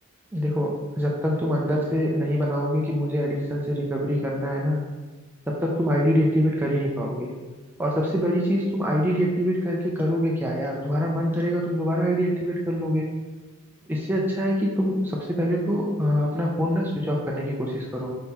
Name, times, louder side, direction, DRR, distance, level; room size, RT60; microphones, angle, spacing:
voice 1, 0.3-4.8 5.5-7.3 7.8-13.1 13.9-18.1, equal, 10° right, -3 dB, 0.3 m, -24 dB
3.7 x 2.8 x 4.2 m, 1.3 s
head